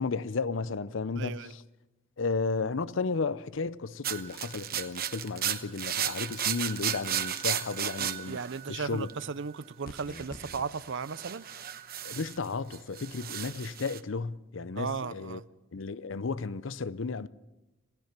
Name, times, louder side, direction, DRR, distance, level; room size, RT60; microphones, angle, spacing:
voice 1, 0.0-1.6 2.2-8.4 8.7-9.1 12.0-15.4 15.7-17.3, left 4 dB, 70° left, 0.6 m, -33 dB
voice 2, 1.2-1.5 8.0-11.5 14.8-15.4, right 5 dB, 65° right, 0.6 m, -36 dB
sound 1, 4.0-9.3 9.9-12.5 12.7-14.0, right 10 dB, 50° right, 1.0 m, -34 dB
sound 2, 9.8-10.7, left 2 dB, 45° left, 0.9 m, -45 dB
27.0 x 16.5 x 5.9 m
head